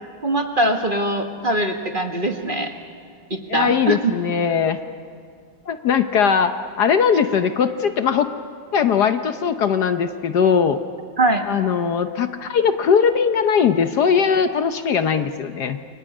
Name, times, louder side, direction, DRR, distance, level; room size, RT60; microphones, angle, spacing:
voice 1, 0.2-2.7 3.3-4.1 11.2-11.5, right 1 dB, 30° right, 5 dB, 1.5 m, -22 dB
voice 2, 3.5-4.8 5.7-6.5 6.8-8.3 8.7-10.8 11.5-15.8, left 7 dB, 60° left, 9 dB, 1.3 m, -19 dB
29.0 x 23.0 x 8.6 m, 2.1 s
omnidirectional pair, 2.1 m